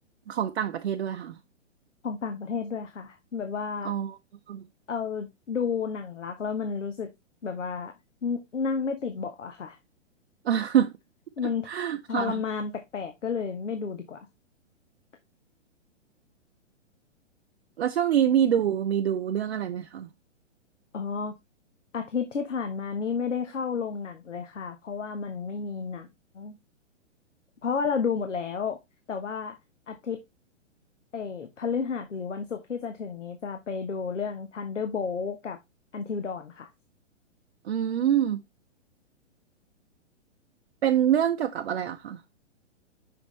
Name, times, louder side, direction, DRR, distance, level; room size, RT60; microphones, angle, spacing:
voice 1, 0.3-1.4 3.8-4.2 4.5-4.6 10.4-10.9 11.7-12.4 17.8-20.1 37.6-38.4 40.8-42.2, right 10 dB, 55° right, 0.7 m, -25 dB
voice 2, 2.0-3.9 4.9-7.1 7.4-7.9 8.2-9.8 11.4-11.7 12.1-14.2 20.9-21.4 21.9-26.1 26.3-26.6 27.6-28.8 29.1-29.6 29.9-30.2 31.1-35.6 35.9-36.7, left 5 dB, 75° left, 1.1 m, -31 dB
6.1 x 5.8 x 3.2 m
figure-of-eight pair, 120°, 37 cm